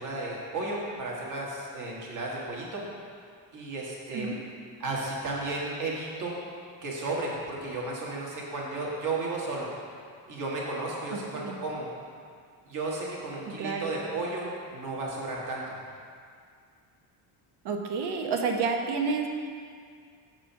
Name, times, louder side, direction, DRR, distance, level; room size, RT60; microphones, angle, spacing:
voice 1, 0.0-2.8 3.5-4.3 4.8-6.4 6.8-9.7 10.3-11.9 12.7-15.6, right 2 dB, 40° right, -4 dB, 1.6 m, -33 dB
voice 2, 13.5-13.9 17.6-19.3, right 4 dB, 60° right, 3 dB, 1.0 m, -29 dB
7.1 x 4.9 x 5.8 m, 2.2 s
cardioid pair, 155°, 46 cm